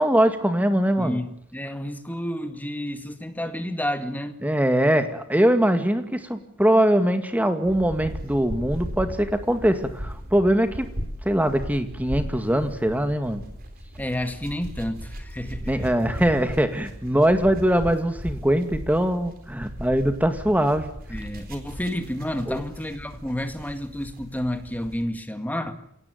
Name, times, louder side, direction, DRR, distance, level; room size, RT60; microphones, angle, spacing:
voice 1, 0.0-1.2 4.4-10.9 11.2-13.4 15.7-20.9 22.5-22.6, right 1 dB, 10° right, 8 dB, 2.2 m, -22 dB
voice 2, 1.0-4.4 14.0-15.9 21.1-25.7, left 1 dB, 10° left, 8 dB, 2.0 m, -30 dB
sound 1, 7.6-25.0, equal, 45° right, 4.0 m, -37 dB
27.0 x 17.5 x 9.4 m, 0.73 s
head